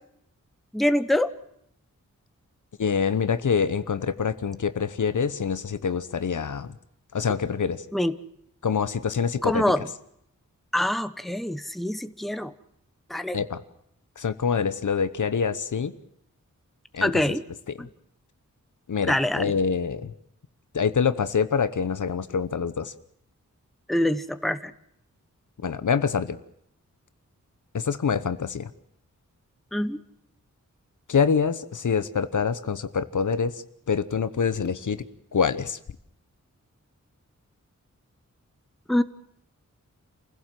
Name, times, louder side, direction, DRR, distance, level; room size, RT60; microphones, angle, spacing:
voice 1, 0.7-1.3 7.9-8.2 9.4-9.9 10.7-12.5 13.1-13.4 17.0-17.4 17.8-17.9 19.0-19.5 23.9-24.7 29.7-30.0 38.9-39.0, left 1 dB, ahead, 11 dB, 0.9 m, -25 dB
voice 2, 2.8-6.7 7.1-7.8 8.6-9.6 13.3-13.6 14.2-15.9 16.9-17.2 18.9-20.1 20.7-22.9 25.6-26.4 27.7-28.7 31.1-33.5 33.9-35.0 35.3-35.8, left 6 dB, 70° left, 13 dB, 1.0 m, -25 dB
27.5 x 16.0 x 7.7 m, 0.73 s
wide cardioid pair, 105°, 32 cm